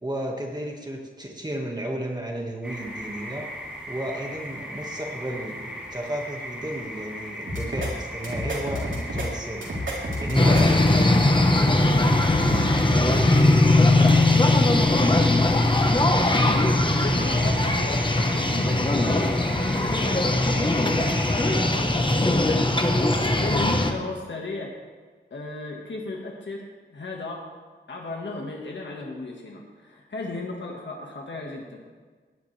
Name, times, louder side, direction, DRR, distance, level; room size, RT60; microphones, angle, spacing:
voice 1, 0.0-3.5 3.9-9.7 10.0-13.4, right 1 dB, 20° right, 0 dB, 1.7 m, -33 dB
sound 1, 2.6-21.5, equal, 5° right, 3.2 m, -38 dB
sound 2, 7.5-7.9 8.2-9.3 9.6-10.6, equal, 85° right, 3.3 m, -30 dB
sound 3, 10.3-23.9, left 2 dB, 25° left, 1.1 m, -20 dB
voice 2, 16.2-16.7 17.0-22.9 23.4-24.7 25.3-26.6 26.9-27.4 27.9-31.8, left 2 dB, 70° left, -1 dB, 1.6 m, -35 dB
17.5 x 10.5 x 3.3 m, 1.4 s
wide cardioid pair, 90°, 19 cm